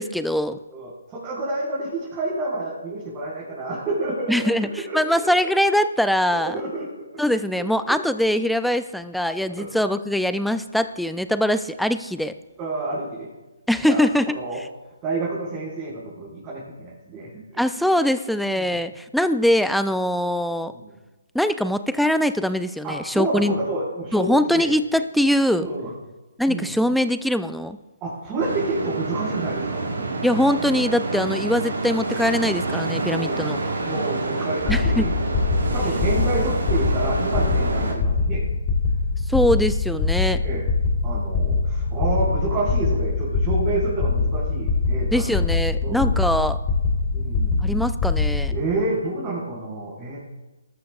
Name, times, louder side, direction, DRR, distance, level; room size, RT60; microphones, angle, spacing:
voice 1, 0.0-0.6 4.3-6.6 7.2-12.3 13.7-14.4 17.6-20.7 21.3-23.6 24.1-25.7 26.4-27.8 30.2-33.6 34.7-35.1 39.3-40.4 45.1-46.6 47.6-48.5, left 1 dB, ahead, 11 dB, 0.4 m, -22 dB
voice 2, 0.7-5.0 6.3-7.2 9.5-9.7 12.6-13.3 13.8-14.0 14.3-14.6 15.0-17.6 18.5-18.8 20.7-21.0 22.8-24.7 25.6-25.9 26.5-26.7 28.0-29.8 33.1-33.4 33.8-35.1 35.7-38.5 40.4-40.7 41.0-45.3 45.8-46.2 47.1-47.6 48.5-50.2, right 2 dB, 20° right, -8 dB, 4.9 m, -29 dB
sound 1, 28.4-37.9, right 3 dB, 70° right, 5.1 m, -28 dB
sound 2, 34.6-48.6, left 4 dB, 20° left, 3.0 m, -23 dB
20.0 x 13.0 x 2.4 m, 1.1 s
figure-of-eight pair, 145°, 0 cm